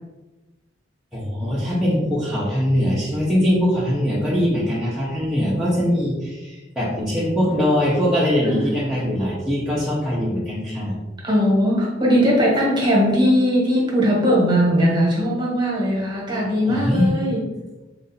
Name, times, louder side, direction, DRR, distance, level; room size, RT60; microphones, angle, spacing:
voice 1, 1.1-11.0 16.7-17.1, equal, ahead, -10 dB, 0.7 m, -21 dB
voice 2, 11.2-17.4, equal, 25° right, -4 dB, 1.3 m, -19 dB
3.7 x 2.6 x 4.1 m, 1.1 s
head